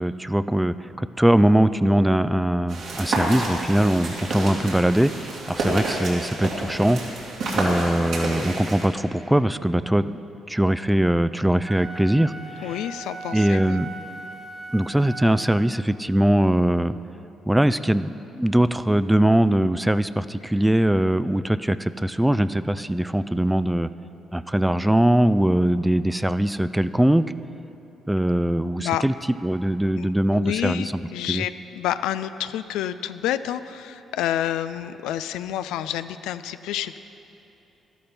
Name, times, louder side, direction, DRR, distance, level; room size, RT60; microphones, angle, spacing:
voice 1, 0.0-7.0 7.5-10.1 10.5-12.8 13.3-13.9 14.7-17.0 17.5-23.9 24.3-27.2 28.1-29.1 29.4-30.9 31.3-31.4, right 1 dB, 5° right, 14 dB, 0.4 m, -21 dB
sound 1, 2.7-8.9, right 2 dB, 75° right, 2.7 m, -29 dB
Wind instrument woodwind instrument, 11.5-15.9, right 3 dB, 45° right, 0.7 m, -38 dB
voice 2, 12.6-13.8 28.8-29.0 30.0-37.0, left 11 dB, 85° left, 12 dB, 0.3 m, -29 dB
12.5 x 11.5 x 4.4 m, 2.9 s
supercardioid pair, 65°, 0 cm